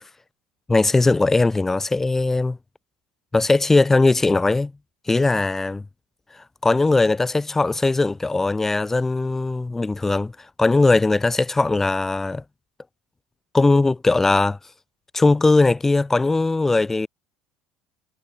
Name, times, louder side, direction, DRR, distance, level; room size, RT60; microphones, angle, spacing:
voice 1, 0.7-2.6 3.3-4.7 5.1-5.8 6.6-10.3 10.6-12.4 13.5-14.6 15.1-17.1, left 3 dB, 15° left, 1.3 m, -19 dB
hypercardioid pair, 80°, 2 cm